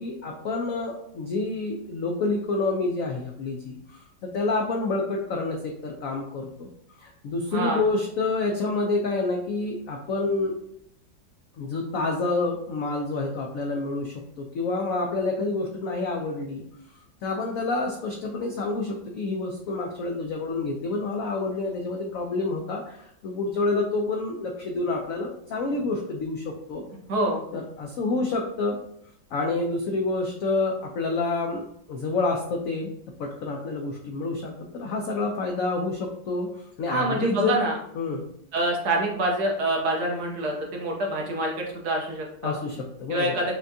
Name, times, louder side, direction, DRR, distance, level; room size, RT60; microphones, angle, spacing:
voice 1, 0.0-6.7 7.0-10.6 11.6-16.6 17.2-26.8 27.5-28.8 29.3-32.9 33.2-37.6 38.0-38.2 42.4-43.4, left 3 dB, 80° left, 1 dB, 0.7 m, -28 dB
voice 2, 7.5-7.8 27.1-27.4 36.9-37.7 38.5-42.6 43.1-43.6, right 1 dB, 65° right, -1 dB, 1.2 m, -26 dB
6.0 x 2.3 x 2.6 m, 0.74 s
omnidirectional pair, 2.0 m